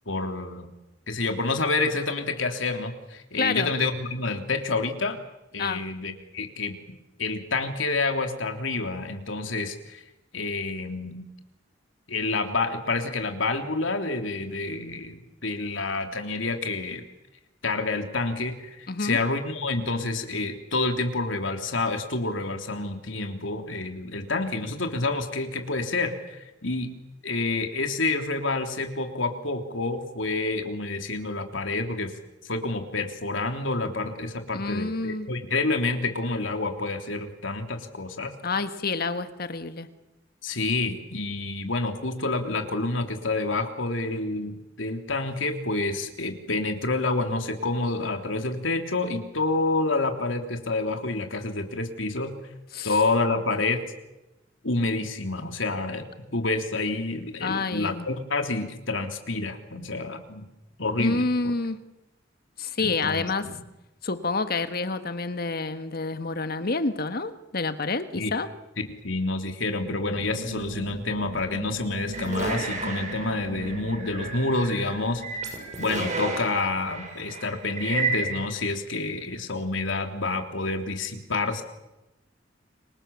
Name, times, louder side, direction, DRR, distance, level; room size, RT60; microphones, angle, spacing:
voice 1, 0.1-0.7 1.1-5.2 5.5-6.7 7.2-10.0 10.3-11.2 12.1-17.0 17.6-26.9 27.2-32.1 32.4-38.3 40.4-52.4 52.8-53.8 54.6-56.1 56.3-60.5 60.8-61.2 62.8-63.6 68.1-68.3 69.0-75.5 75.8-81.6, left 3 dB, 85° left, 5 dB, 3.3 m, -28 dB
voice 2, 3.4-3.7 5.6-5.8 18.9-19.2 34.5-35.3 38.4-39.9 52.7-52.9 57.4-58.0 61.0-61.8 62.6-63.5 64.0-68.5, left 3 dB, 55° left, 10 dB, 1.5 m, -28 dB
sound 1, 69.8-76.5, right 2 dB, 70° right, 1.3 m, -41 dB
sound 2, 72.1-78.5, right 3 dB, 40° right, 7.0 m, -32 dB
29.5 x 25.0 x 7.2 m, 0.96 s
head